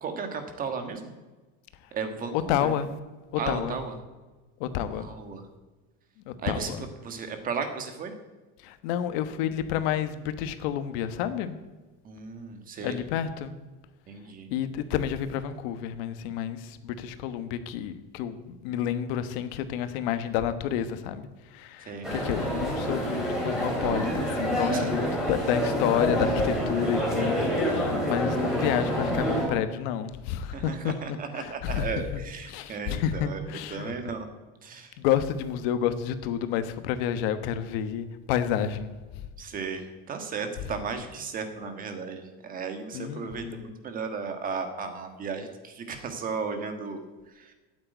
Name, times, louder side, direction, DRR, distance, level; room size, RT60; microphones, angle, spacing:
voice 1, 0.0-1.1 1.9-2.7 3.4-3.9 5.0-5.4 6.4-6.7 7.0-8.1 12.0-13.0 14.1-14.5 21.9-22.1 24.7-24.8 30.5-33.4 33.7-34.3 34.6-34.9 39.4-39.8 40.1-47.0, right 5 dB, 30° right, 7 dB, 1.4 m, -35 dB
voice 2, 2.3-2.9 3.5-3.8 4.6-5.1 6.3-6.8 8.6-11.6 12.8-13.5 14.5-21.3 21.5-30.9 31.4-31.9 32.5-34.1 35.0-38.9 42.9-43.7, left 9 dB, 85° left, 10 dB, 1.2 m, -30 dB
sound 1, 22.0-29.5, equal, ahead, 3.4 m, -27 dB
8.8 x 8.5 x 9.2 m, 1.2 s
cardioid pair, 170°, 29 cm